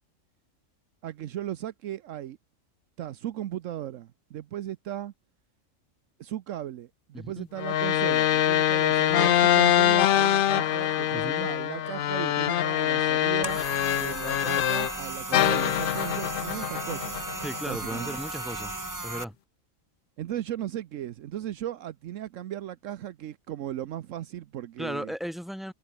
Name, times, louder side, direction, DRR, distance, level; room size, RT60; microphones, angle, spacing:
voice 1, 1.0-2.4 3.0-5.1 6.2-13.6 14.0-17.2 17.6-18.2 20.2-25.1, right 12 dB, 75° right, 1.1 m, -36 dB
voice 2, 7.1-7.5 11.1-11.5 17.4-18.7 19.0-19.4 24.8-25.7, equal, ahead, 2.9 m, -36 dB
sound 1, 7.6-15.0 15.3-17.7, left 11 dB, 60° left, 0.6 m, -24 dB
sound 2, 9.6-18.1, right 1 dB, 45° right, 6.8 m, -53 dB
sound 3, 13.4-19.2, right 2 dB, 15° right, 1.2 m, -36 dB
omnidirectional pair, 1.3 m